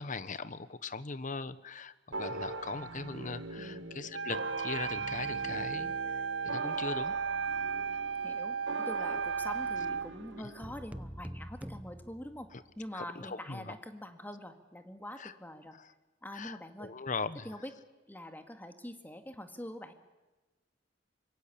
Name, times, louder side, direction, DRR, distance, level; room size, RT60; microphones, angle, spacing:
voice 1, 0.0-7.1 7.9-8.0 12.9-13.7 15.2-15.3 15.8-15.9 16.3-17.5, left 4 dB, 45° left, 15 dB, 1.1 m, -40 dB
sound 1, 2.1-10.8, right 3 dB, 90° right, 1.6 m, -42 dB
voice 2, 3.6-4.1 8.2-12.5 12.8-15.8 16.2-16.9 17.4-17.7 18.1-19.9, left 1 dB, 10° left, 7 dB, 2.0 m, -45 dB
Wind instrument woodwind instrument, 4.1-10.1, right 6 dB, 75° right, 0.8 m, -35 dB
sound 2, 10.6-12.9, equal, 10° right, 0.8 m, -45 dB
25.0 x 22.5 x 8.6 m, 1.2 s
head